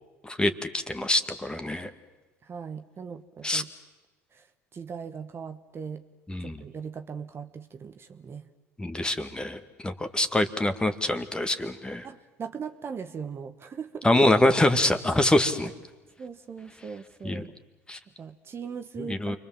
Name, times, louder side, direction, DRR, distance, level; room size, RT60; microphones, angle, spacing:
voice 1, 0.2-1.9 3.4-3.6 6.3-6.6 8.8-12.1 14.0-15.7 17.2-17.5 17.9-18.0 19.0-19.4, left 1 dB, 10° left, 8 dB, 2.0 m, -25 dB
voice 2, 2.4-3.7 4.3-4.5 4.7-6.0 6.4-8.5 12.0-14.1 16.2-17.5 18.2-19.4, right 6 dB, 35° right, 8 dB, 1.4 m, -39 dB
29.0 x 23.0 x 7.6 m, 1.2 s
hypercardioid pair, 75°, 7 cm